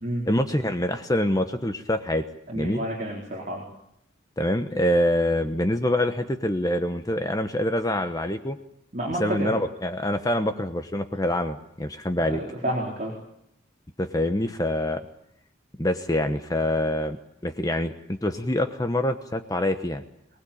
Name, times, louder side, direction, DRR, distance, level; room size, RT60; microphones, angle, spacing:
voice 1, 0.2-2.2 2.5-2.8 4.4-8.6 9.2-12.4 14.0-15.0 15.8-20.0, left 1 dB, 15° left, 8 dB, 1.0 m, -25 dB
voice 2, 2.5-3.6 8.9-9.5 12.2-13.1, right 1 dB, 35° right, -2 dB, 4.2 m, -30 dB
23.5 x 19.5 x 8.6 m, 0.76 s
head